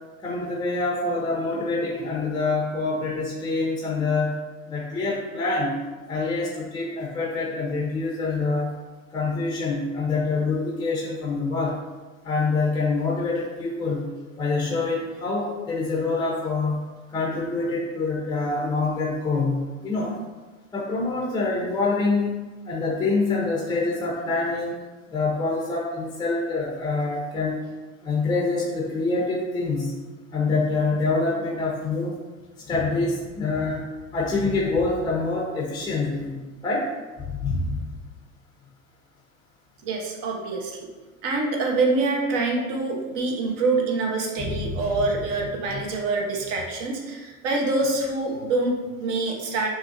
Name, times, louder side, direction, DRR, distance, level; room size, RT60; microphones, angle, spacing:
voice 1, 0.2-4.3 4.7-5.8 6.1-8.7 9.1-11.7 12.2-14.1 14.4-16.8 17.1-20.2 20.7-22.4 22.6-24.8 25.1-27.6 28.0-29.9 30.3-32.1 32.7-33.8 34.1-36.9 37.3-37.8 44.4-45.1 45.7-45.8, left 3 dB, 10° left, -3 dB, 0.7 m, -26 dB
voice 2, 39.8-40.9 41.2-49.7, right 3 dB, 50° right, 0 dB, 1.1 m, -25 dB
5.9 x 2.8 x 2.6 m, 1.3 s
hypercardioid pair, 110°, 40 cm